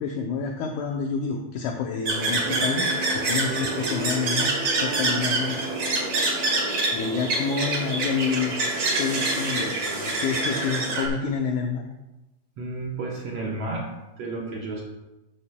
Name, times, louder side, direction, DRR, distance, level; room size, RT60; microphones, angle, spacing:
voice 1, 0.0-5.6 6.9-8.6 9.0-11.8, left 5 dB, 80° left, 1 dB, 1.8 m, -28 dB
sound 1, 2.0-11.1, right 2 dB, 45° right, 2.2 m, -26 dB
sound 2, 2.5-7.1, right 3 dB, 60° right, 2.2 m, -38 dB
voice 2, 12.6-14.8, right 2 dB, 80° right, -2 dB, 1.4 m, -32 dB
13.0 x 8.0 x 2.2 m, 1.0 s
omnidirectional pair, 4.2 m